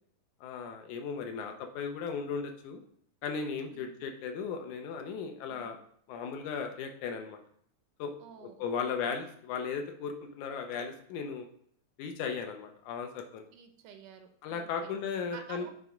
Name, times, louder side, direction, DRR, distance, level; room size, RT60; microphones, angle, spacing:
voice 1, 0.4-2.8 3.2-5.8 6.1-7.4 8.0-8.1 8.4-11.5 12.0-13.5 14.4-15.7, left 6 dB, 75° left, 5 dB, 2.0 m, -36 dB
voice 2, 8.2-9.2 13.5-15.0 15.3-15.7, right 7 dB, 75° right, 6 dB, 2.1 m, -51 dB
7.9 x 3.4 x 5.0 m, 0.64 s
omnidirectional pair, 3.7 m